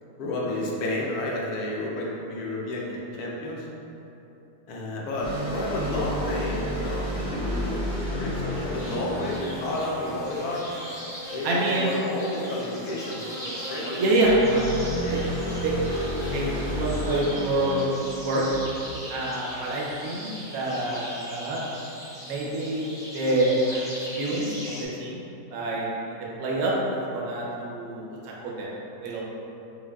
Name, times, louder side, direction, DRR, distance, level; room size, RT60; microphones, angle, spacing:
voice 1, 0.2-3.7 4.7-7.8 8.2-10.7 11.3-13.4 13.7-14.0 14.5-14.7 15.0-15.3, left 1 dB, 70° left, -3 dB, 1.1 m, -31 dB
sound 1, 5.2-10.7 14.2-18.9, equal, 35° left, 1.4 m, -32 dB
sound 2, 8.8-24.8, equal, 5° left, 0.3 m, -39 dB
voice 2, 11.4-12.0 14.0-14.6 15.1-15.2 15.6-15.8 16.3-17.9 18.2-18.4 19.1-21.6 22.2-23.9 24.2-24.5 25.0-25.2 25.5-25.9 26.4-26.7 27.1-28.7 29.0-29.2, right 1 dB, 65° right, -4 dB, 1.1 m, -26 dB
5.3 x 3.3 x 2.3 m, 3.0 s
omnidirectional pair, 1.8 m